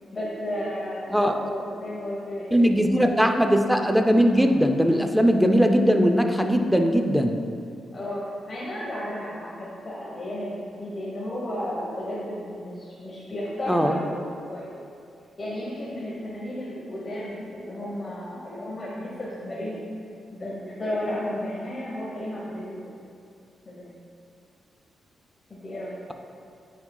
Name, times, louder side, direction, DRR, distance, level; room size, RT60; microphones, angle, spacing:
voice 1, 0.1-2.7 3.0-3.1 7.9-14.8 15.4-19.9 20.3-22.9 23.7-23.9 25.5-26.0, left 1 dB, 40° left, -6 dB, 1.0 m, -33 dB
voice 2, 2.5-7.4 13.7-13.9, equal, ahead, 5 dB, 0.5 m, -20 dB
9.5 x 4.8 x 2.3 m, 2.5 s
cardioid pair, 75°, 0 cm